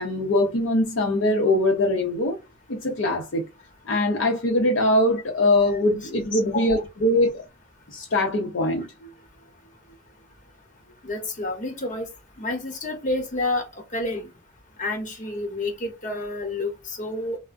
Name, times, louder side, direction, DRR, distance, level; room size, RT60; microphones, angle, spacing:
voice 1, 0.0-2.4 2.7-3.5 3.9-7.4 7.9-8.9, left 1 dB, 70° left, 0.6 m, -22 dB
voice 2, 6.4-6.8 11.0-12.1 12.4-14.3 14.8-17.4, left 2 dB, 40° left, 1.0 m, -29 dB
3.4 x 2.1 x 2.4 m
head